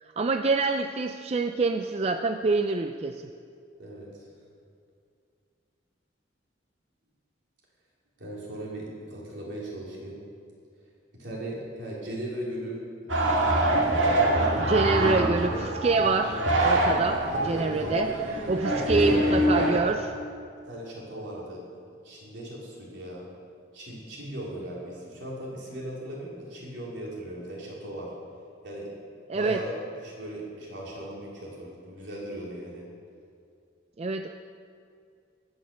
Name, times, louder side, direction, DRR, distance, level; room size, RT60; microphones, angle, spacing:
voice 1, 0.0-3.3 14.3-20.1 29.3-29.6 34.0-34.3, right 3 dB, 35° right, 7 dB, 0.4 m, -26 dB
voice 2, 3.8-4.3 8.2-10.2 11.2-12.8 13.4-15.2 17.0-18.0 18.7-19.3 20.7-21.7 22.0-23.3 23.7-28.1 28.6-28.9 29.3-29.7 30.0-32.8, right 1 dB, 70° right, -4 dB, 3.5 m, -38 dB
sound 1, 13.1-19.8, right 1 dB, 90° right, 2.1 m, -25 dB
18.0 x 6.4 x 6.8 m, 2.4 s
head